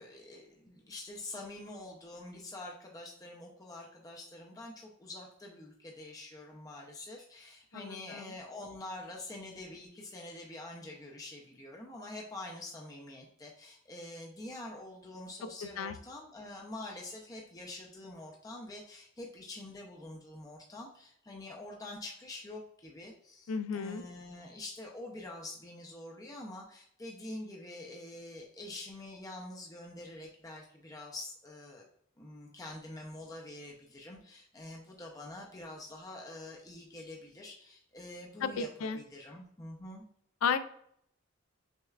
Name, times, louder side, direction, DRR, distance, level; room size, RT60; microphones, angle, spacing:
voice 1, 0.0-31.8 32.2-40.0, left 2 dB, 15° left, -1 dB, 0.4 m, -46 dB
voice 2, 7.7-8.3 15.8-15.9 23.5-24.0 38.4-39.0 40.4-40.6, left 6 dB, 85° left, 12 dB, 0.3 m, -33 dB
6.1 x 2.2 x 2.3 m, 0.68 s
head